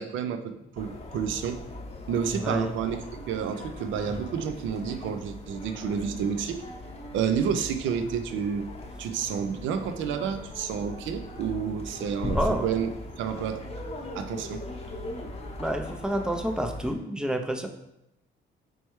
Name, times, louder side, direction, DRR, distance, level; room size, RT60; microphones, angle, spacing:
voice 1, 0.0-1.6 2.1-3.0 3.3-6.6 7.1-8.7 9.0-12.9 13.2-13.7 14.1-14.6, right 7 dB, 75° right, 8 dB, 0.4 m, -30 dB
sound 1, 0.8-16.9, left 1 dB, 30° left, 0.8 m, -39 dB
voice 2, 12.3-12.7 15.6-17.7, right 1 dB, 5° right, 5 dB, 0.4 m, -28 dB
4.4 x 3.1 x 3.0 m, 0.83 s
cardioid pair, 90°, 20 cm